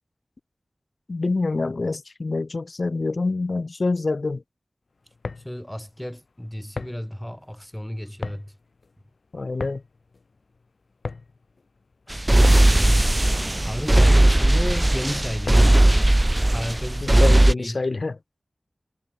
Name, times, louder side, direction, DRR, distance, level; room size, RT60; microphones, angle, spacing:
voice 1, 1.1-4.4 9.3-9.8 17.0-18.2, left 3 dB, 70° left, 1.4 m, -26 dB
sound 1, 5.0-15.9, left 3 dB, 85° left, 1.7 m, -38 dB
voice 2, 5.4-8.5 12.1-12.2 12.5-13.1 13.6-15.9 16.5-17.8, equal, 10° left, 3.7 m, -33 dB
sound 2, 12.1-17.5, right 1 dB, 25° right, 0.4 m, -17 dB
wide cardioid pair, 45°, 0 cm